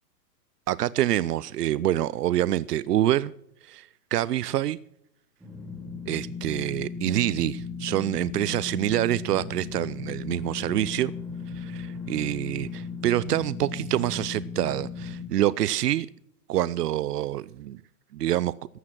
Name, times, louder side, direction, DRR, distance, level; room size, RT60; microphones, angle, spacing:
voice 1, 0.7-3.3 3.6-4.8 6.1-11.1 11.5-16.1 16.5-17.8 18.1-18.5, right 13 dB, 90° right, 0.6 m, -26 dB
sound 1, 5.4-15.2, left 5 dB, ahead, 2.9 m, -36 dB
15.0 x 9.9 x 6.1 m
hypercardioid pair, 170°, 46 cm